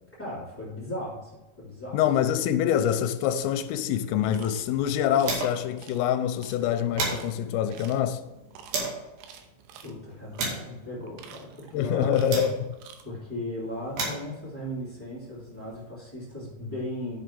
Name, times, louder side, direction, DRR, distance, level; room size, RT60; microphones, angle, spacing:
voice 1, 0.2-2.0 9.8-12.2 13.0-17.2, left 1 dB, 5° left, 1.2 m, -37 dB
voice 2, 1.9-8.2 11.7-12.7, left 9 dB, 85° left, 3.2 m, -25 dB
sound 1, 4.0-5.8 6.1-6.2 6.5-9.1 9.7-12.9 13.6-15.8, right 3 dB, 60° right, 3.8 m, -36 dB
sound 2, 4.3-4.7 5.2-5.4 5.8-6.0 6.4-6.6 7.0-7.3 7.7-8.1 8.5-8.8 9.2-9.9 10.3-10.6 11.0-11.8 12.1-12.5 12.7-13.0, right 8 dB, 85° right, 3.2 m, -49 dB
11.0 x 5.9 x 3.7 m
omnidirectional pair, 5.9 m